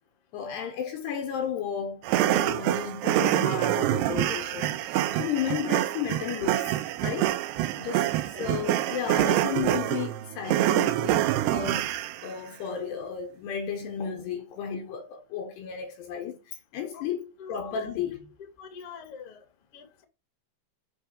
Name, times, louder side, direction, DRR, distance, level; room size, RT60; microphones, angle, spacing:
voice 1, 0.3-6.7 7.0-7.3 7.8-8.1 8.4-12.0 12.2-18.3, left 8 dB, 70° left, 3.0 m, -33 dB
sound 1, 2.0-12.3, right 14 dB, 90° right, 2.4 m, -26 dB
voice 2, 8.3-8.7 16.9-17.9 18.6-19.5 19.7-20.0, left 6 dB, 45° left, 2.1 m, -45 dB
8.2 x 6.0 x 5.0 m
omnidirectional pair, 5.5 m